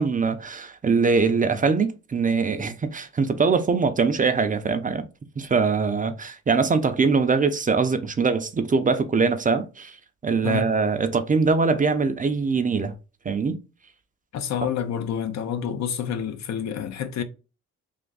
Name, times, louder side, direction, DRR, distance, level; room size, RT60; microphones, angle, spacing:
voice 1, 0.0-5.1 5.4-9.9 10.2-12.9 13.3-13.6, right 4 dB, 25° right, 0.5 m, -22 dB
voice 2, 14.3-17.2, left 8 dB, 65° left, 0.7 m, -28 dB
3.4 x 2.4 x 3.8 m
cardioid pair, 90°, 30 cm